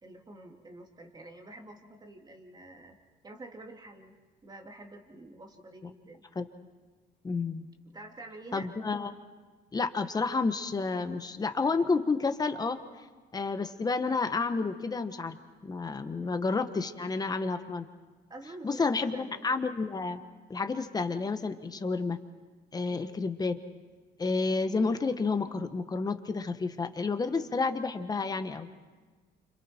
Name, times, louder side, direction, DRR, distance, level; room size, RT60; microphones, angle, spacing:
voice 1, 0.0-3.0 3.2-4.1 4.4-6.2 7.9-8.7 16.2-16.4 18.3-19.4 22.9-23.2, right 2 dB, 25° right, 2 dB, 2.7 m, -48 dB
voice 2, 7.2-7.7 8.5-9.1 9.7-12.8 13.3-15.4 15.6-17.9 18.6-20.2 20.5-22.2 22.7-23.6 24.2-28.7, left 4 dB, 20° left, 9 dB, 1.3 m, -30 dB
29.5 x 27.0 x 4.5 m, 1.3 s
cardioid pair, 110°, 17 cm